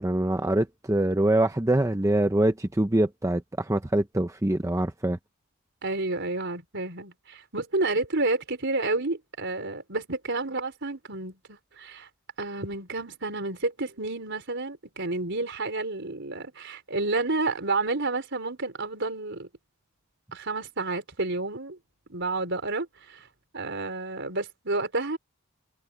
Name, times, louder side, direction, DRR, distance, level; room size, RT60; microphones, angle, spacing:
voice 1, 0.0-5.2, right 1 dB, 15° right, 0.7 m, -24 dB
voice 2, 5.8-12.1 12.4-19.5 20.3-21.8 22.1-23.3 23.5-25.2, right 3 dB, 55° right, 4.7 m, -30 dB
head